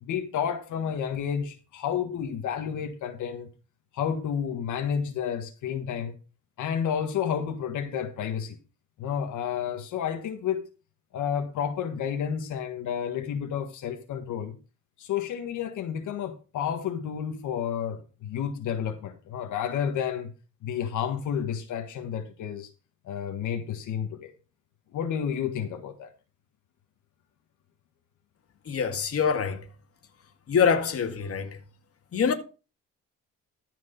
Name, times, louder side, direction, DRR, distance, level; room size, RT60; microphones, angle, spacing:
voice 1, 0.0-3.5 3.9-6.1 6.6-8.6 9.0-10.6 11.1-14.6 15.0-20.3 20.6-22.7 23.0-24.3 24.9-26.1, left 8 dB, 80° left, 1.7 m, -31 dB
voice 2, 28.7-29.6 30.5-31.5 32.1-32.3, left 6 dB, 50° left, 2.0 m, -24 dB
14.0 x 5.2 x 5.4 m
cardioid pair, 90°, 30 cm